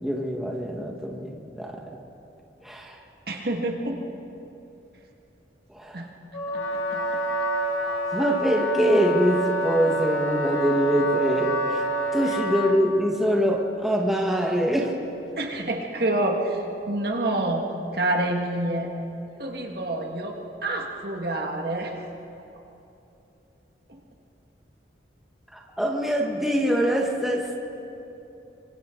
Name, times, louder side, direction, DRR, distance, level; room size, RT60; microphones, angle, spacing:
voice 1, 0.0-1.8 2.6-3.0 5.7-6.1 8.1-11.8 12.1-14.9 25.5-27.6, equal, ahead, -1 dB, 1.6 m, -24 dB
voice 2, 3.3-4.0 5.9-6.1 6.5-7.2 12.3-12.4 15.4-16.6 16.9-17.7 17.9-18.9 19.4-21.9 23.9-24.0, right 2 dB, 55° right, 1 dB, 1.9 m, -28 dB
Wind instrument woodwind instrument, 6.3-12.8, right 1 dB, 90° left, 3.0 m, -27 dB
26.5 x 25.0 x 3.9 m, 2.9 s
head